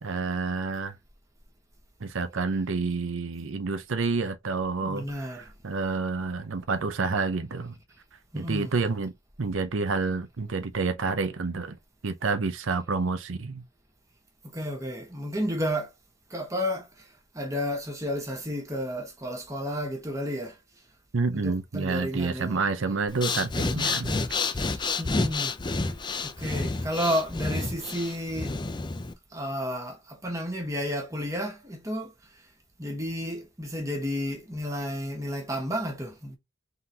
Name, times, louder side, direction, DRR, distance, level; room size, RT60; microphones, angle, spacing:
voice 1, 0.0-1.0 2.0-7.7 8.3-9.1 9.4-11.8 12.0-13.6 21.1-24.2, right 4 dB, 85° right, 0.7 m, -29 dB
voice 2, 4.8-5.5 8.3-8.7 14.4-15.9 16.3-17.1 17.3-20.6 21.3-22.6 23.6-23.9 24.3-25.5 26.2-28.6 29.3-32.1 32.8-36.4, equal, 15° right, 1.4 m, -32 dB
Breathing, 23.1-29.1, left 3 dB, 25° left, 0.5 m, -29 dB
3.9 x 3.9 x 2.8 m
head